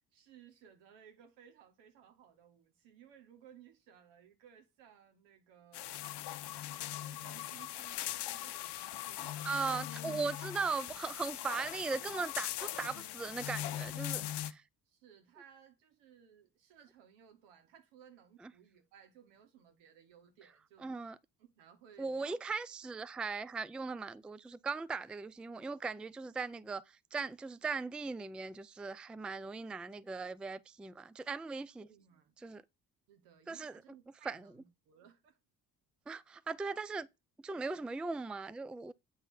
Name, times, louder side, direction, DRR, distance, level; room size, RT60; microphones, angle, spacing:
voice 1, 0.1-6.0 6.9-9.8 14.9-20.9 21.4-22.4 31.8-32.3 33.1-35.4, right 8 dB, 85° right, 1.9 m, -60 dB
sound 1, 5.7-14.5, left 13 dB, 65° left, 0.8 m, -40 dB
voice 2, 9.4-14.6 20.8-21.2 22.0-26.8 27.1-31.9 32.4-32.6 33.5-33.7 34.3-34.4 36.1-37.1 37.4-38.9, right 4 dB, ahead, 0.4 m, -38 dB
8.1 x 3.9 x 5.5 m
hypercardioid pair, 55°, 44 cm